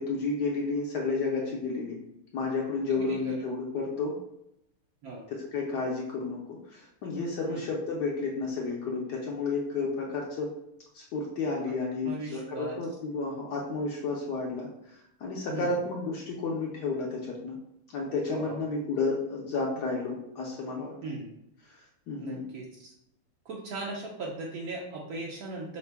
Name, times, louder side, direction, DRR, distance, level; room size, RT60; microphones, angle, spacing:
voice 1, 0.0-2.0 2.3-4.1 5.3-6.4 6.7-10.5 10.9-17.5 17.9-20.9 21.7-22.4, left 3 dB, 70° left, -2 dB, 1.0 m, -31 dB
voice 2, 2.9-3.4 5.0-5.2 7.5-7.7 12.0-12.8 15.5-15.7 18.3-18.6 21.0-21.3 22.2-22.9 23.4-25.8, right 2 dB, 80° right, -3 dB, 0.8 m, -38 dB
5.6 x 2.2 x 3.3 m, 0.80 s
omnidirectional pair, 2.4 m